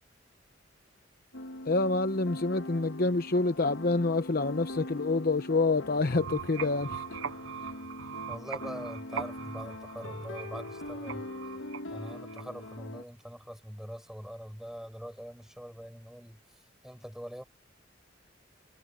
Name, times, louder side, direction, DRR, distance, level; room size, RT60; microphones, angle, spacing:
sound 1, 1.3-13.0, left 1 dB, 85° left, 1.5 m, -42 dB
voice 1, 1.6-7.2, left 3 dB, 50° left, 0.9 m, -27 dB
sound 2, 6.0-12.8, right 7 dB, 80° right, 0.5 m, -42 dB
voice 2, 8.3-11.3 11.9-16.4 16.8-17.4, equal, 5° right, 4.7 m, -43 dB
head